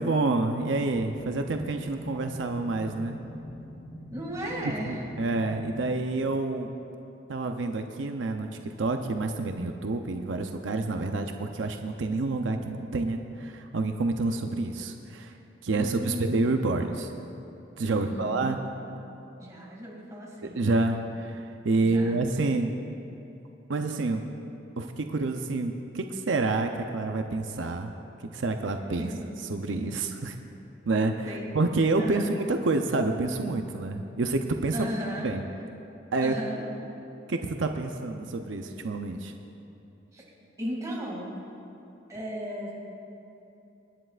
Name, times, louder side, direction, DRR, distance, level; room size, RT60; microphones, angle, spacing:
voice 1, 0.0-3.2 4.9-6.7 7.3-15.4 15.6-17.1 17.8-18.6 20.4-22.8 23.7-24.2 24.8-27.9 28.2-29.1 29.5-30.3 30.9-34.9 35.2-35.4 36.1-36.3 37.3-39.3, right 3 dB, 85° right, 5 dB, 0.6 m, -28 dB
sound 1, 0.8-5.9, equal, 80° left, 3.3 m, -43 dB
voice 2, 4.1-5.0 15.7-16.4 17.9-18.6 19.4-20.6 21.8-22.2 29.0-30.0 31.2-31.5 32.0-32.3 34.7-35.3 36.2-36.6 40.1-40.2 40.6-41.3 42.1-42.8, equal, 20° right, -3 dB, 2.4 m, -36 dB
25.0 x 10.0 x 2.5 m, 2.9 s
head